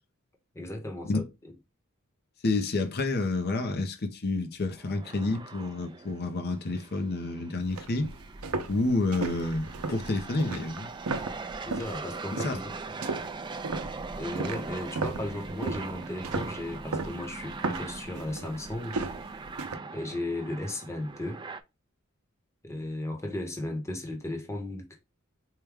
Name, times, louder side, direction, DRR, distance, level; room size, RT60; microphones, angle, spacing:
voice 1, 0.5-1.2 11.6-13.0 14.2-19.0 19.9-21.4 22.6-25.0, left 1 dB, 15° left, 0.9 m, -35 dB
voice 2, 2.4-8.1 8.7-10.9 12.4-12.6, left 2 dB, 50° left, 0.7 m, -29 dB
sound 1, 4.7-21.6, right 4 dB, 20° right, 0.4 m, -41 dB
sound 2, 7.6-12.0 12.4-12.7 13.0-19.8, right 3 dB, 80° right, 0.6 m, -35 dB
4.7 x 2.2 x 3.4 m
head